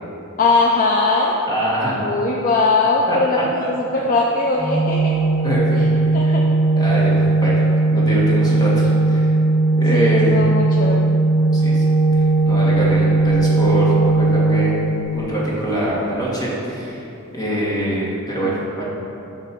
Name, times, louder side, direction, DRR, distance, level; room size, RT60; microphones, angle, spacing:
voice 1, 0.4-1.4 2.0-5.2 6.1-6.4 9.9-11.0 18.4-18.6, left 3 dB, 40° left, -1 dB, 0.4 m, -20 dB
voice 2, 1.5-2.0 3.1-3.4 5.4-6.4 6.8-7.6 7.9-9.3 9.8-10.3 11.5-11.9 12.2-14.7 15.1-17.0 17.3-18.8, right 1 dB, 20° left, -6 dB, 1.5 m, -24 dB
Organ, 4.6-15.5, right 2 dB, 15° right, 1.2 m, -17 dB
8.7 x 3.0 x 6.1 m, 2.9 s
head